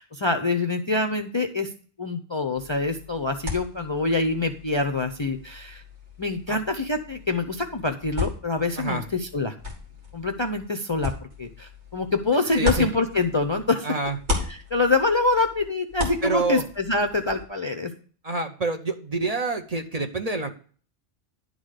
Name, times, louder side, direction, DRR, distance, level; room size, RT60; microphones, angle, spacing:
voice 1, 0.0-1.7 2.0-5.8 6.2-9.5 10.1-11.1 11.4-14.0 14.5-17.9, left 3 dB, 35° left, 5 dB, 0.5 m, -25 dB
sound 1, 2.6-13.7 14.0-17.4, left 3 dB, 85° right, 2.5 m, -35 dB
voice 2, 8.8-9.1 12.5-12.9 13.8-14.2 16.2-16.7 18.2-20.5, right 3 dB, 40° right, 6 dB, 0.8 m, -27 dB
11.0 x 3.9 x 6.4 m, 0.43 s
omnidirectional pair, 1.1 m